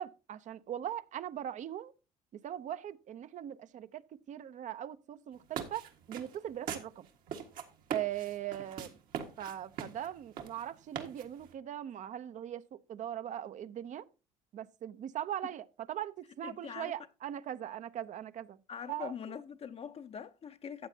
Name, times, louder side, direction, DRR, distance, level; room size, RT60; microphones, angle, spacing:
voice 1, 0.0-1.9 2.4-4.0 4.3-7.1 7.9-9.0 9.4-14.1 14.5-18.6 18.9-19.1, right 11 dB, 55° right, 0.6 m, -40 dB
sound 1, 5.3-11.5, right 8 dB, 70° right, 1.7 m, -42 dB
voice 2, 16.4-16.9 18.7-20.9, left 7 dB, 40° left, 0.6 m, -43 dB
14.0 x 8.0 x 2.8 m
supercardioid pair, 75°, 15 cm